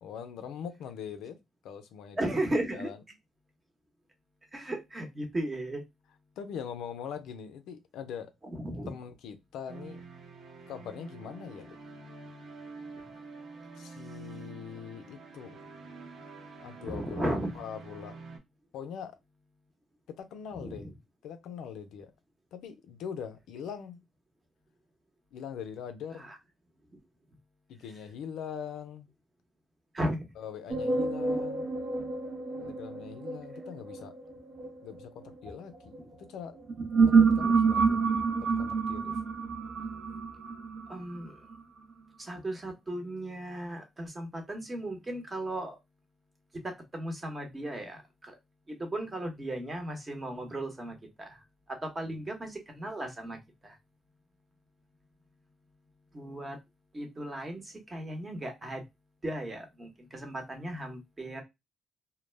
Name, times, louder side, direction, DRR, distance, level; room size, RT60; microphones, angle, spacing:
voice 1, 0.0-1.4 1.6-2.3 2.7-3.0 6.4-8.3 8.9-10.0 10.7-11.8 13.8-15.6 16.6-18.2 18.7-19.2 20.2-20.9 21.2-22.1 22.5-24.0 25.3-26.3 27.7-29.1 30.4-31.7 32.6-34.1 34.8-36.6 37.0-38.0 38.4-39.1 52.0-52.2, left 7 dB, 85° left, 0.4 m, -42 dB
voice 2, 2.2-2.9 4.5-5.8 8.4-8.9 12.9-13.1 16.8-17.5 20.5-20.9 26.1-26.4 29.9-30.3 40.9-41.5 42.2-45.8 46.5-48.4 48.7-53.8 56.1-56.6 56.9-58.8 59.2-61.4, right 1 dB, 25° right, 0.8 m, -36 dB
sound 1, 9.7-18.4, right 3 dB, 70° right, 0.9 m, -47 dB
sound 2, 30.7-36.0 36.6-41.5, right 4 dB, 55° right, 0.6 m, -28 dB
2.1 x 2.0 x 3.2 m
cardioid pair, 90°, 0 cm